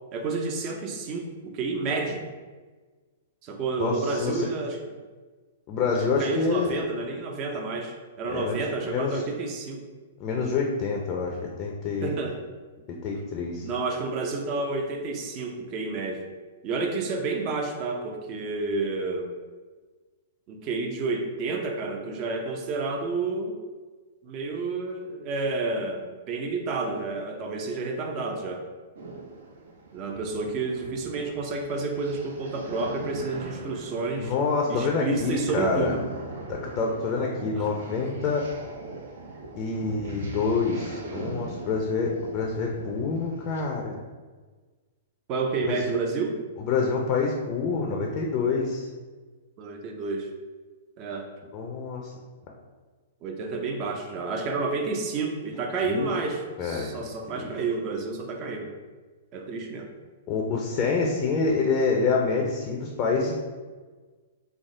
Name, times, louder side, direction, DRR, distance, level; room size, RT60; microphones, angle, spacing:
voice 1, 0.1-2.2 3.4-4.8 5.9-9.8 12.0-12.4 13.6-16.3 16.6-19.3 20.5-23.6 24.2-28.7 29.9-34.3 34.7-36.0 37.5-37.7 45.3-46.4 49.6-50.3 51.0-51.3 53.2-58.7 59.3-59.9, right 3 dB, 40° right, 4 dB, 0.5 m, -30 dB
voice 2, 3.8-4.5 5.7-6.8 8.3-8.6 8.9-9.2 10.2-12.2 12.9-13.6 34.2-35.9 36.5-38.5 39.6-44.0 45.7-45.8 46.7-48.8 51.5-52.1 55.9-56.1 56.6-56.9 57.3-57.5 60.3-63.3, left 4 dB, 35° left, 0 dB, 0.5 m, -27 dB
sound 1, 29.0-43.6, right 3 dB, 75° right, 0.7 m, -41 dB
3.4 x 2.0 x 3.6 m, 1.4 s
hypercardioid pair, 130°, 0 cm